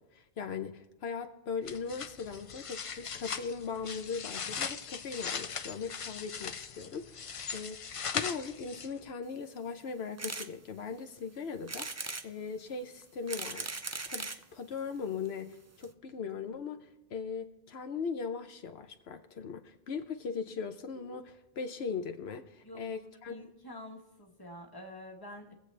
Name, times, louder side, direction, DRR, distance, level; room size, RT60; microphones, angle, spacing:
voice 1, 0.0-11.9 12.2-23.5, left 5 dB, 85° left, 1.1 m, -39 dB
sound 1, 1.6-9.1, left 6 dB, 45° left, 0.5 m, -39 dB
sound 2, 10.2-10.5 11.0-11.1 11.7-12.3 13.0-14.4 15.2-15.3 15.5-15.6 15.8-15.9, right 3 dB, 25° right, 0.3 m, -38 dB
voice 2, 22.6-23.0 23.3-25.5, left 1 dB, 20° left, 1.5 m, -47 dB
23.5 x 7.9 x 3.4 m
omnidirectional pair, 1.0 m